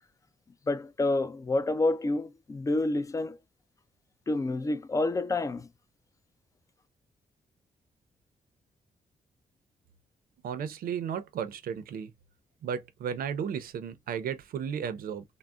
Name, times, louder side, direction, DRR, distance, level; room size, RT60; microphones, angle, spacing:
voice 1, 0.7-3.4 4.3-5.7, left 2 dB, 20° left, 0.4 m, -28 dB
voice 2, 10.4-12.1 12.6-15.2, right 7 dB, 85° right, 0.5 m, -34 dB
3.7 x 2.0 x 2.2 m
cardioid pair, 105°, 15 cm